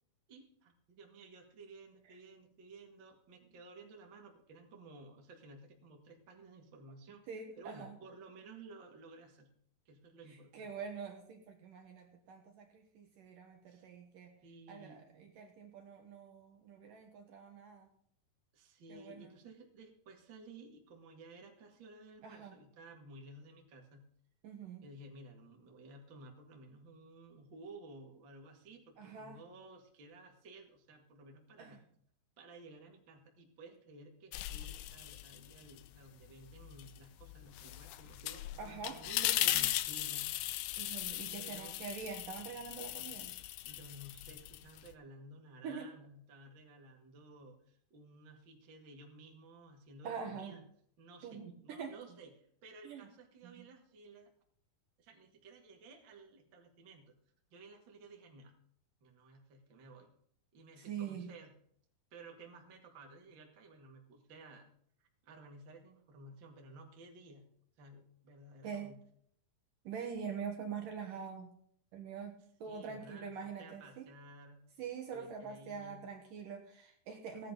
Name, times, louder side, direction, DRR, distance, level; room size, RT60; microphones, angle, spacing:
voice 1, 0.3-7.2 7.6-9.5 9.9-10.7 13.7-13.8 14.4-15.0 18.5-24.1 24.8-31.8 32.4-40.4 41.4-41.7 42.8-43.2 43.6-50.6 51.0-52.3 52.6-54.3 55.0-57.1 57.5-58.6 59.0-60.1 60.5-61.5 62.1-64.7 65.0-67.5 67.8-69.0 72.6-74.7 75.1-76.1, right 2 dB, 35° right, 1 dB, 2.2 m, -55 dB
voice 2, 7.3-8.0 10.5-14.3 14.7-17.9 18.9-19.3 22.2-22.6 24.4-24.9 29.0-29.4 31.6-31.8 38.6-39.6 40.8-43.3 45.6-45.9 50.0-50.6 51.2-51.9 52.8-53.1 53.4-53.7 60.8-61.3 68.6-68.9 69.8-71.5 71.9-74.1 74.8-77.5, right 6 dB, 65° right, 2 dB, 2.8 m, -45 dB
sound 1, 34.3-35.9 36.2-44.9, left 15 dB, 80° left, 2.2 m, -38 dB
16.5 x 10.0 x 4.0 m, 0.64 s
omnidirectional pair, 4.7 m